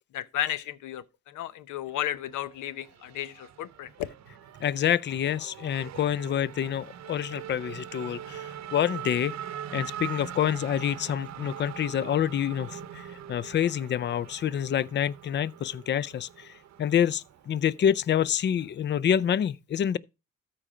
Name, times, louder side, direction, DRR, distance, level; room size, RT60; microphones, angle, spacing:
voice 1, 0.1-4.1, left 12 dB, 85° left, 0.8 m, -33 dB
Race car auto racing / Accelerating revving vroom, 1.9-18.9, right 10 dB, 65° right, 0.8 m, -43 dB
voice 2, 4.6-9.3 9.7-16.5 16.8-20.0, left 9 dB, 40° left, 0.4 m, -27 dB
13.5 x 4.5 x 5.0 m
cardioid pair, 90°, 30 cm